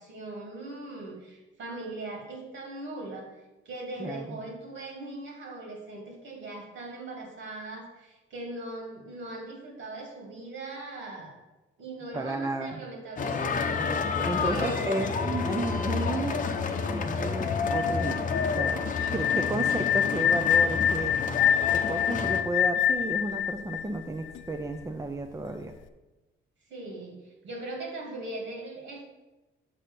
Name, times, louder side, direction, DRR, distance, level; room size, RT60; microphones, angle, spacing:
voice 1, 0.0-3.3 3.6-11.4 11.8-13.7 14.1-14.9 19.0-20.3 26.7-29.2, right 2 dB, 70° right, 0 dB, 2.6 m, -40 dB
voice 2, 4.0-4.4 12.1-12.8 14.2-16.5 16.9-21.2 21.7-25.7, right 2 dB, 15° right, 5 dB, 0.6 m, -33 dB
sound 1, 13.2-22.4, left 4 dB, 40° left, 0.8 m, -30 dB
sound 2, 17.6-24.6, left 9 dB, 75° left, 0.5 m, -26 dB
7.5 x 4.2 x 6.8 m, 1.1 s
cardioid pair, 90°, 20 cm